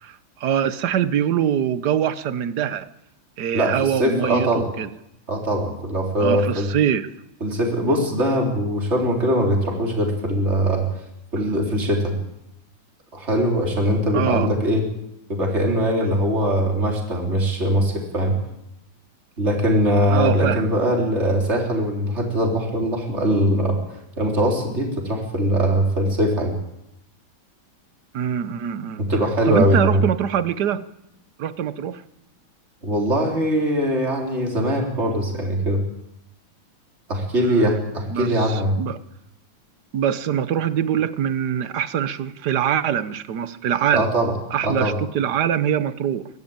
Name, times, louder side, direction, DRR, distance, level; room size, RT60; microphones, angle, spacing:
voice 1, 0.0-2.9 3.4-4.9 6.2-7.1 14.1-14.5 20.1-20.7 28.1-29.0 29.5-30.8 31.4-32.0 37.4-37.8 38.1-39.0 39.9-44.1 44.5-46.3, right 9 dB, 60° right, 14 dB, 1.4 m, -23 dB
voice 2, 3.5-4.7 5.3-6.7 7.4-10.8 11.3-12.2 13.1-14.8 15.3-18.4 19.4-23.8 24.2-26.6 29.0-30.0 32.8-35.8 37.1-38.8 43.9-44.3 44.6-44.9, equal, 30° right, 1 dB, 4.1 m, -21 dB
23.5 x 16.0 x 8.9 m, 0.85 s
omnidirectional pair, 2.3 m